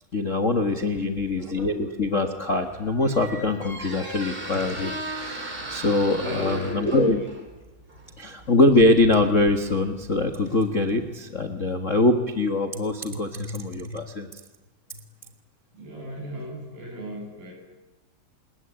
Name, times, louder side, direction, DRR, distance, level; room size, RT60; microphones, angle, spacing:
voice 1, 0.1-7.2 8.2-14.3, left 2 dB, 50° left, 5 dB, 0.8 m, -23 dB
voice 2, 0.9-1.7 6.2-7.3 15.7-17.5, right 1 dB, 90° right, 1 dB, 9.9 m, -35 dB
Squeak, 2.4-11.1, right 2 dB, 15° right, 3.8 m, -38 dB
27.0 x 21.0 x 10.0 m, 1.2 s
omnidirectional pair, 4.0 m